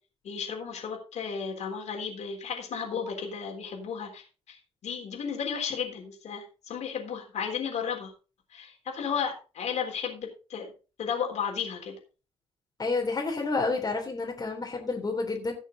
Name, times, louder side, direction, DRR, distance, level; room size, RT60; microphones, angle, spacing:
voice 1, 0.2-8.1 8.5-10.7 11.0-12.0, left 7 dB, 50° left, 1 dB, 3.6 m, -34 dB
voice 2, 12.8-15.5, left 3 dB, 25° left, 1 dB, 3.3 m, -29 dB
17.0 x 6.3 x 3.9 m, 0.33 s
figure-of-eight pair, 45°, 15 cm